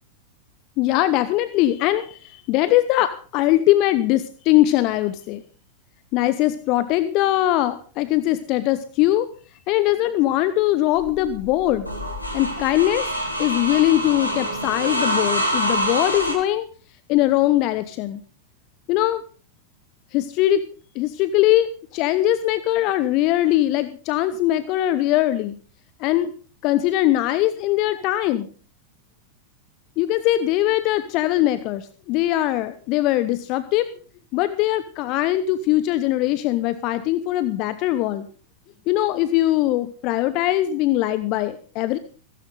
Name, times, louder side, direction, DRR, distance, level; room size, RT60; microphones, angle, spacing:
voice 1, 0.8-5.4 6.1-9.3 9.7-11.9 12.3-13.1 13.4-16.6 17.1-18.2 18.9-19.2 20.1-20.6 20.9-25.6 26.0-26.3 26.6-28.5 30.0-33.9 34.3-38.3 38.9-42.0, left 14 dB, 40° left, 13 dB, 0.8 m, -21 dB
sound 1, 11.0-16.3, equal, 90° left, 3.6 m, -26 dB
16.5 x 15.5 x 3.9 m, 0.41 s
figure-of-eight pair, 90°, 0 cm